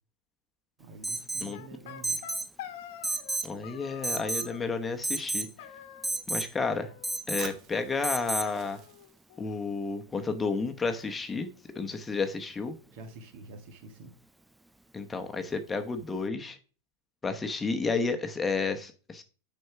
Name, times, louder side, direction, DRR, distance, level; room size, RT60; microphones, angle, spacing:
voice 1, 0.8-2.2 12.9-14.1, right 3 dB, 60° right, 1.7 m, -47 dB
Alarm, 1.0-1.5 2.0-2.5 3.0-3.5 4.0-4.5 5.0-5.5 6.0-6.5 7.0-7.5 8.0-8.5, right 2 dB, 5° right, 0.4 m, -31 dB
sound 1, 1.5-3.4 3.6-4.7 5.6-6.4 6.6-7.5 7.7-7.8 8.1-8.2 8.4-9.5, left 10 dB, 70° left, 1.1 m, -46 dB
voice 2, 3.4-5.5 6.3-6.9 7.3-8.8 9.4-11.5 11.7-12.7 14.9-16.6 17.2-19.2, left 4 dB, 15° left, 1.0 m, -31 dB
Fire, 7.4-11.4, right 6 dB, 40° right, 1.4 m, -50 dB
6.3 x 4.3 x 5.8 m
hypercardioid pair, 115°, 0 cm